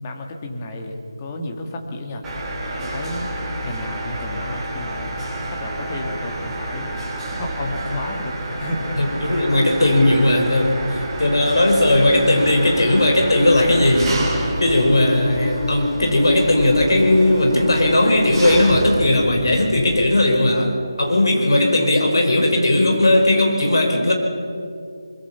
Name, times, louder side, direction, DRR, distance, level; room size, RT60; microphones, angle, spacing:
voice 1, 0.0-2.3 2.8-3.3 3.6-5.2 5.5-7.0 7.4-9.4, left 1 dB, 20° left, 2 dB, 2.0 m, -31 dB
Mechanisms, 2.2-20.3, right 1 dB, 10° right, 2.8 m, -29 dB
voice 2, 9.0-24.1, left 1 dB, 60° left, 2 dB, 4.8 m, -17 dB
23.0 x 22.0 x 5.8 m, 2.6 s
figure-of-eight pair, 160°, 2 cm